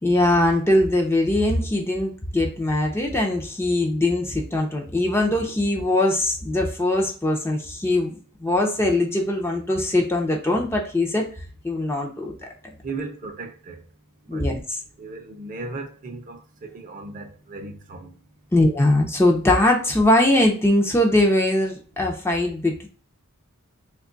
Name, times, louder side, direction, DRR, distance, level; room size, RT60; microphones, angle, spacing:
voice 1, 0.0-11.3 11.6-12.3 14.3-14.8 18.5-22.9, left 1 dB, 10° left, 0.5 m, -21 dB
voice 2, 12.8-13.8 14.3-14.5 15.0-18.1, right 3 dB, 40° right, 0.6 m, -36 dB
3.1 x 2.3 x 3.8 m
head